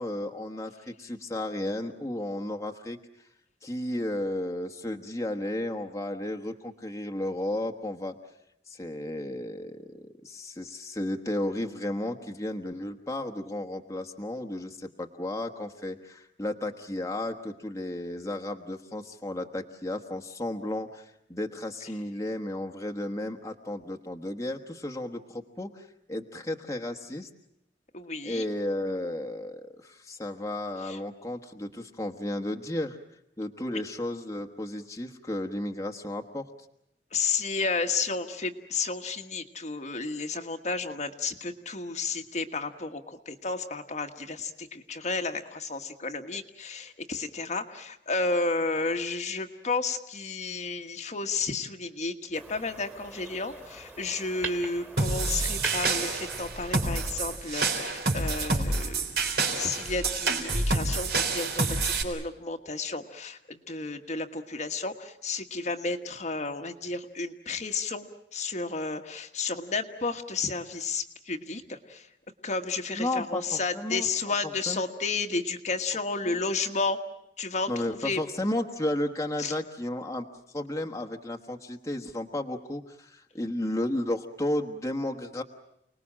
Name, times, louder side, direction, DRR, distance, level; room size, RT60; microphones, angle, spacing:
voice 1, 0.0-3.0 3.6-8.1 8.7-27.3 28.2-33.0 33.4-36.5 72.9-74.1 74.4-74.8 76.2-76.4 77.7-80.2 80.5-85.4, left 1 dB, 15° left, 3 dB, 1.4 m, -33 dB
voice 2, 27.9-28.5 30.8-31.0 37.1-59.0 59.5-72.1 72.4-77.0 77.4-78.2 79.4-79.5, left 3 dB, 40° left, 5 dB, 1.4 m, -32 dB
sound 1, 52.3-57.4, right 3 dB, 10° right, 2.4 m, -42 dB
sound 2, 55.0-62.0, right 3 dB, 60° right, 3.8 m, -28 dB
29.5 x 20.0 x 7.5 m, 0.81 s
head